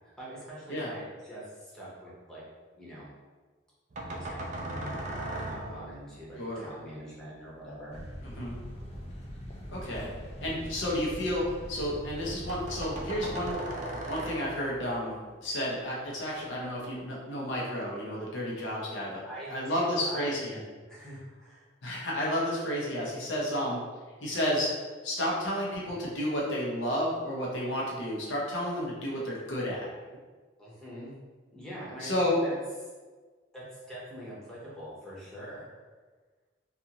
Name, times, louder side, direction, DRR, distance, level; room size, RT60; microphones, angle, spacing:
voice 1, 0.2-2.4 2.7-3.1 4.1-8.0 19.2-20.4 20.9-21.6 30.6-31.1 31.5-32.5 33.5-35.7, equal, 5° left, -8 dB, 0.8 m, -43 dB
sound 1, 3.9-6.3 8.3-11.5 11.9-12.0 12.2-12.3 12.5-15.0, right 1 dB, 40° right, 0.4 m, -39 dB
sound 2, 7.9-13.5, equal, 35° left, 0.4 m, -42 dB
voice 2, 8.2-8.6 9.7-10.1 10.4-13.6 14.1-19.2 19.5-20.6 21.8-23.8 24.2-24.7 25.0-29.9 32.0-32.4, equal, 70° left, -4 dB, 0.7 m, -31 dB
2.5 x 2.5 x 2.8 m, 1.4 s
head